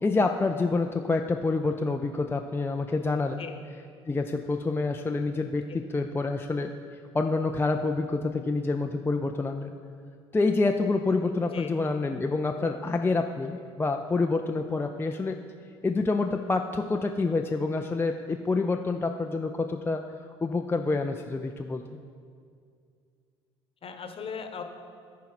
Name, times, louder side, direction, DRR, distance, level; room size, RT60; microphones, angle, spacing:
voice 1, 0.0-3.4 4.1-6.7 7.1-9.7 10.3-15.4 15.8-20.0 20.4-22.0, left 3 dB, 15° left, 4 dB, 0.4 m, -27 dB
voice 2, 11.4-11.7 23.8-24.6, left 6 dB, 40° left, 6 dB, 1.1 m, -38 dB
14.0 x 4.7 x 4.2 m, 2.2 s
hypercardioid pair, 55°, 14 cm